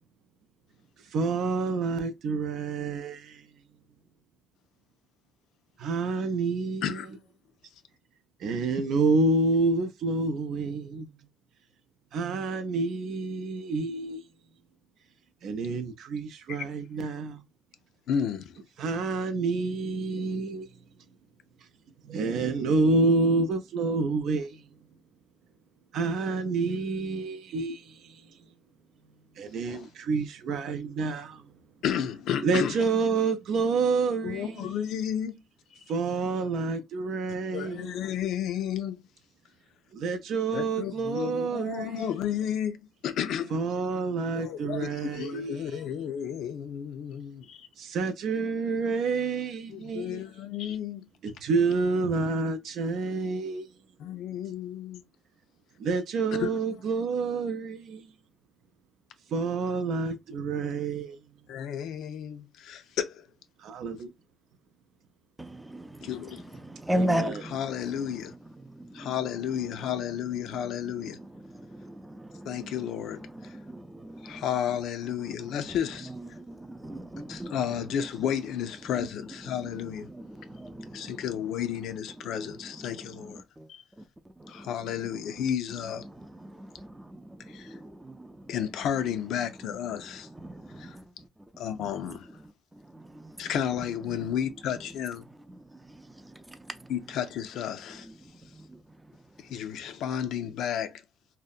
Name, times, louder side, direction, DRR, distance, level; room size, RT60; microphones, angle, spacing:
voice 1, 1.1-3.4 5.8-7.0 8.4-11.1 12.1-14.2 15.4-17.4 18.8-20.7 22.0-24.6 25.9-28.2 29.4-31.4 32.4-34.7 35.9-38.0 39.9-42.1 43.5-45.8 47.8-50.2 51.2-53.7 55.8-58.1 59.3-61.2 63.6-64.1 66.9-67.4, right 3 dB, 75° right, 0.4 m, -28 dB
voice 2, 18.1-18.6 29.7-29.9 31.8-32.8 34.2-35.4 37.5-39.0 40.5-43.6 44.3-47.7 49.7-51.1 54.0-55.0 56.4-56.6 61.5-63.3 66.0-66.4 67.5-68.3 68.9-71.2 72.5-73.5 74.2-76.1 77.3-80.1 80.9-83.4 83.7-83.8 84.5-86.0 87.5-87.8 88.5-90.3 90.8-91.0 91.6-92.3 93.4-95.3 96.9-98.1 99.4-101.0, left 9 dB, 85° left, 0.3 m, -32 dB
voice 3, 65.4-78.0 78.8-81.8 82.1-83.7 84.0-85.5 85.8-88.8 89.5-94.3 95.3-96.9 97.9-99.9, right 1 dB, 10° right, 0.4 m, -40 dB
2.7 x 2.1 x 2.3 m
cardioid pair, 90°, 0 cm